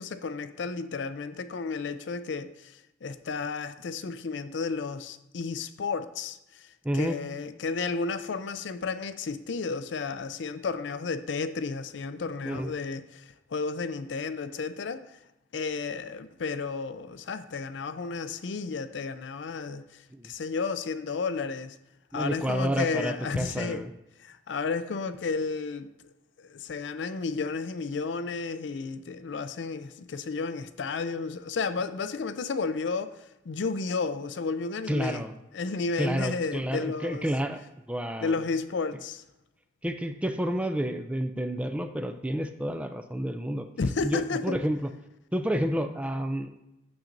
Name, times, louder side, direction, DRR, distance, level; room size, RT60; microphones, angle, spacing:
voice 1, 0.0-6.7 6.9-15.0 15.5-19.8 20.2-21.7 22.1-23.8 24.2-25.9 26.5-33.2 33.5-35.2 35.5-37.2 38.2-39.2 43.8-44.6, left 4 dB, 70° left, 11 dB, 0.5 m, -32 dB
voice 2, 6.8-7.2 12.4-12.7 20.1-20.3 22.1-23.9 34.9-35.3 36.0-37.6 37.9-38.4 39.8-43.7 44.0-44.9 45.3-46.5, equal, 5° right, 8 dB, 0.4 m, -30 dB
8.9 x 7.0 x 2.6 m, 0.90 s
head